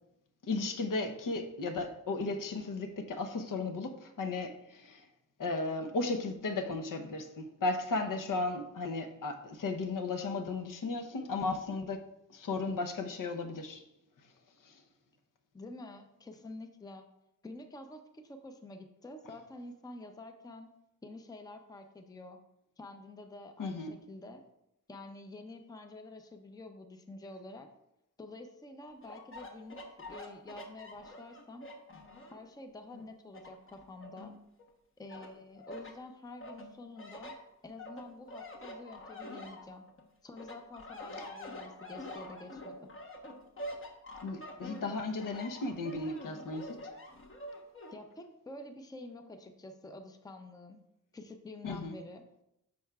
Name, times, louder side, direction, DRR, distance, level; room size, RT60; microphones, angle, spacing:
voice 1, 0.4-5.1 5.4-13.9 14.6-14.8 23.6-23.9 41.2-41.3 44.2-46.8 51.6-52.0, left 3 dB, 70° left, 0.8 m, -35 dB
voice 2, 15.5-17.1 17.4-20.7 21.0-22.4 22.8-24.4 24.9-27.7 28.2-31.7 32.3-34.4 35.0-37.3 37.6-39.8 40.2-42.9 47.9-50.8 51.1-52.2, left 2 dB, 10° left, 0.5 m, -48 dB
sound 1, 29.0-32.5 32.9-34.7 35.1-36.0 36.4-40.0 40.4-48.0, left 1 dB, 40° left, 1.0 m, -46 dB
10.5 x 6.3 x 2.3 m
wide cardioid pair, 155°, 33 cm